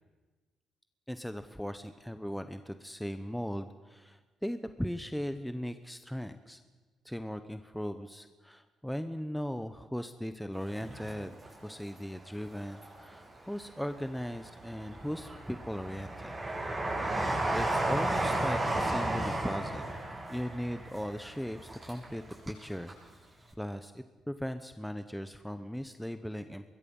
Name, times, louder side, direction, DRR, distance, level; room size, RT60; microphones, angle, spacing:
voice 1, 1.1-6.6 7.0-11.3 11.6-16.3 17.1-20.0 20.3-22.9 23.6-26.6, equal, 5° left, 9 dB, 0.9 m, -38 dB
Train, 10.7-11.9 12.4-13.3 13.8-22.6 22.9-23.0, right 1 dB, 20° right, 6.7 m, -34 dB
24.5 x 21.5 x 5.5 m, 1.3 s
cardioid pair, 90°, 0 cm